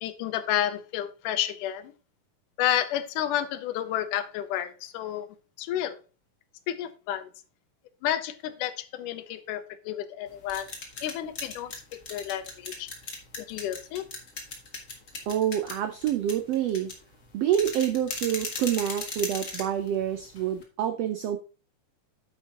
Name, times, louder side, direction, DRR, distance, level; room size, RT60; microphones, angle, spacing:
voice 1, 0.0-1.9 2.6-5.3 5.6-6.0 6.7-7.3 8.0-10.7 11.0-12.9 13.4-14.1, left 11 dB, 80° left, 12 dB, 2.2 m, -31 dB
sound 1, 10.3-20.6, left 3 dB, 40° left, 1.1 m, -39 dB
voice 2, 15.3-16.9 17.3-21.4, right 10 dB, 85° right, 8 dB, 1.4 m, -27 dB
9.1 x 7.6 x 2.9 m, 0.35 s
omnidirectional pair, 3.7 m